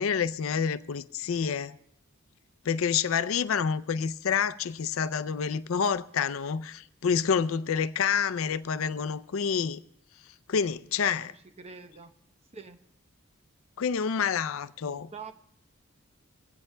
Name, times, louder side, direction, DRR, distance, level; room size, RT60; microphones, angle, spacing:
voice 1, 0.0-1.8 2.7-9.8 10.5-11.3 13.8-15.1, left 6 dB, 75° left, 0.4 m, -28 dB
voice 2, 11.6-12.1 12.5-12.8 15.1-15.3, right 5 dB, 30° right, 0.8 m, -44 dB
24.0 x 16.0 x 2.2 m
head